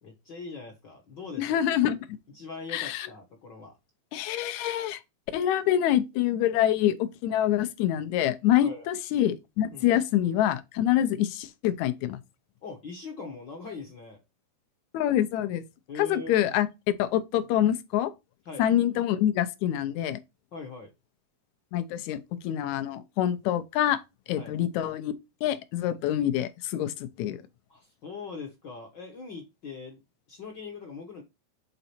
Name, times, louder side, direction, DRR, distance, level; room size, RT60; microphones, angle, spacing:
voice 1, 0.0-1.7 2.3-3.8 8.6-8.9 9.7-9.9 12.6-14.2 15.9-16.4 18.4-18.7 20.5-20.9 24.4-24.5 27.7-30.0 30.3-31.2, left 4 dB, 55° left, 1.3 m, -41 dB
voice 2, 1.4-2.0 2.7-3.1 4.1-5.0 5.3-12.2 14.9-15.6 16.0-16.7 17.0-18.1 18.6-20.2 21.7-24.0 24.3-25.1 25.4-27.4, left 11 dB, 75° left, 2.0 m, -26 dB
6.8 x 4.0 x 4.3 m
omnidirectional pair, 3.5 m